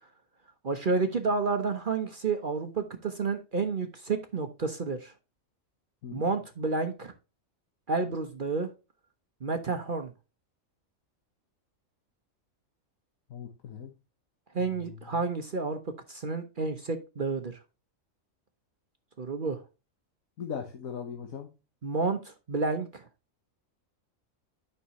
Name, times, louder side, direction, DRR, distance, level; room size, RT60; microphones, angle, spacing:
voice 1, 0.6-5.1 6.1-7.1 7.9-8.7 9.4-10.1 14.5-15.8 16.1-17.6 19.2-19.6 21.8-23.1, right 4 dB, 45° right, 7 dB, 0.9 m, -30 dB
voice 2, 13.3-13.9 14.6-15.2 20.4-21.5, left 7 dB, 85° left, 3 dB, 1.5 m, -39 dB
9.8 x 5.7 x 3.0 m, 0.29 s
omnidirectional pair, 1.4 m